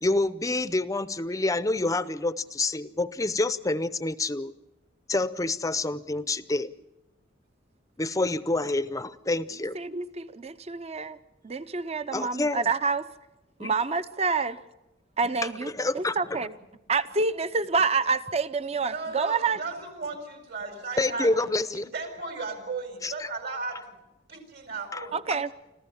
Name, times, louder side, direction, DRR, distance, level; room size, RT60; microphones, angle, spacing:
voice 1, 0.0-4.5 5.1-6.7 8.0-9.8 12.1-12.7 13.6-13.7 15.4-16.4 21.0-21.9 23.0-23.3 24.9-25.0, left 2 dB, 20° left, 15 dB, 0.6 m, -28 dB
voice 2, 9.7-11.2 11.4-13.1 13.6-14.6 15.2-16.5 16.9-19.6 25.1-25.5, right 4 dB, 35° right, 13 dB, 0.7 m, -27 dB
voice 3, 18.8-21.3 21.7-23.9 24.3-25.2, right 4 dB, 60° right, 5 dB, 4.7 m, -35 dB
26.0 x 14.5 x 7.2 m, 0.97 s
head